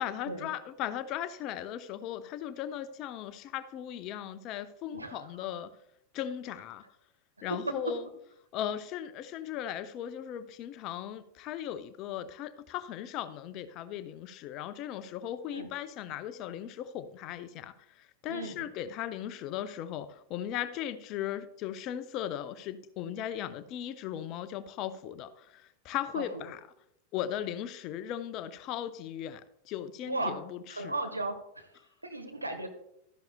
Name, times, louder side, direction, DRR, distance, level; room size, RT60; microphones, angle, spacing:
voice 1, 0.0-5.7 6.1-6.8 7.4-8.1 8.5-26.6 27.1-30.9, left 10 dB, 40° left, 0.6 m, -37 dB
voice 2, 4.9-5.5 7.7-7.8 15.5-15.7 18.3-18.7 26.1-26.4 30.0-30.4 30.7-31.7 32.0-32.7, right 2 dB, 85° right, 1.3 m, -36 dB
12.5 x 10.5 x 2.3 m
figure-of-eight pair, 90°, 0 cm